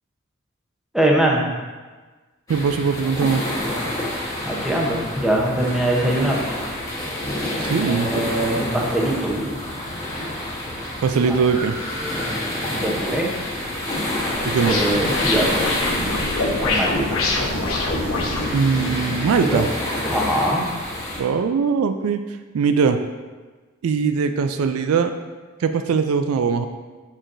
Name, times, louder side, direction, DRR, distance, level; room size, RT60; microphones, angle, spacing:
voice 1, 0.9-1.4 4.4-6.4 7.5-9.6 11.3-11.4 12.7-13.3 14.6-15.7 16.6-17.2 19.4-19.6 20.1-20.6, right 1 dB, ahead, -2 dB, 0.8 m, -22 dB
sound 1, 2.5-21.2, left 1 dB, 15° left, 1.1 m, -28 dB
voice 2, 2.5-3.4 7.6-8.3 11.0-11.8 14.4-14.8 18.5-19.7 21.2-22.2 22.5-23.0 23.8-25.1 25.6-26.7, right 5 dB, 90° right, 8 dB, 0.4 m, -21 dB
sound 2, 11.5-20.3, equal, 25° right, 1.9 m, -36 dB
sound 3, 13.5-18.5, left 2 dB, 85° left, 1.0 m, -25 dB
6.2 x 6.2 x 2.6 m, 1.3 s
head